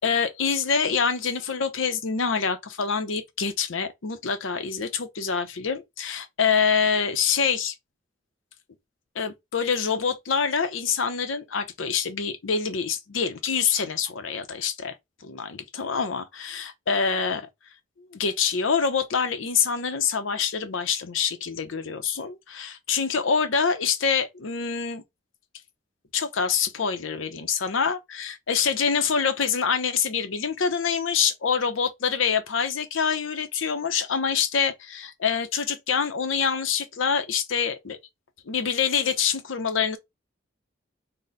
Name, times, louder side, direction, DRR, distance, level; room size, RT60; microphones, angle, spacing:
voice 1, 0.0-7.7 9.1-15.0 15.2-17.5 18.1-25.0 26.1-38.0 38.5-40.0, left 6 dB, 85° left, 0.7 m, -26 dB
3.9 x 2.1 x 3.9 m
head